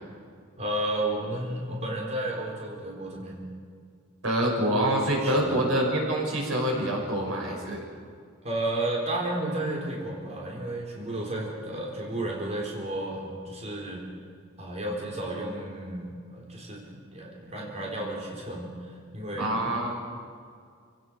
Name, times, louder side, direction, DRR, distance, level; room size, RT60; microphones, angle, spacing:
voice 1, 0.6-3.5 5.2-5.6 8.4-14.0 14.6-18.7 19.1-19.5, right 1 dB, 35° right, -2 dB, 3.8 m, -32 dB
voice 2, 4.2-7.8 19.4-20.0, right 1 dB, 85° right, 0 dB, 5.9 m, -26 dB
27.5 x 17.5 x 6.3 m, 2.1 s
head